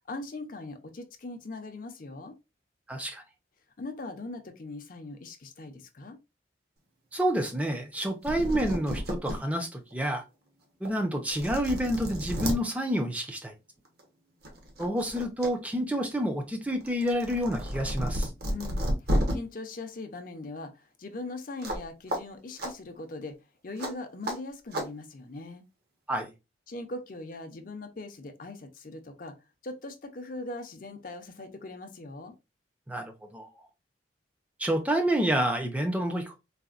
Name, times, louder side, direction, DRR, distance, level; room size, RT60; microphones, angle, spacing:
voice 1, 0.1-2.3 3.8-6.2 18.4-18.9 19.3-23.4 23.6-25.6 26.7-29.3 29.6-32.3, left 2 dB, 45° left, 0.6 m, -40 dB
voice 2, 2.9-3.2 7.1-10.2 10.8-13.5 14.8-18.3 26.1-26.3 32.9-33.5 34.6-36.4, equal, 5° right, 0.5 m, -29 dB
sound 1, 8.0-8.1 8.2-9.4 9.9-10.0 10.8-10.9 11.3-12.6 13.8-14.0 14.4-15.5 15.8-19.3 21.6-21.8 22.1-22.2 22.6-22.7 23.8-23.9 24.2-24.4 24.7-24.9, equal, 55° right, 0.9 m, -31 dB
4.1 x 2.1 x 2.4 m
head